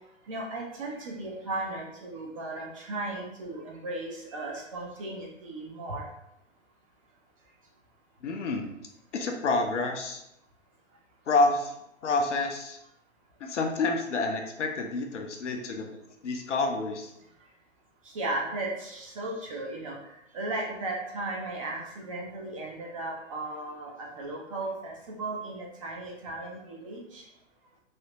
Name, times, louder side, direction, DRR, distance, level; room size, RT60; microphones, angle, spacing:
voice 1, 0.3-6.1 18.1-27.2, right 2 dB, 25° right, -1 dB, 0.5 m, -36 dB
voice 2, 8.2-8.6 9.1-10.2 11.3-11.7 12.0-12.8 13.4-15.9 16.2-17.1, left 3 dB, 65° left, 3 dB, 0.7 m, -28 dB
3.2 x 2.7 x 2.9 m, 0.82 s
figure-of-eight pair, 115°, 39 cm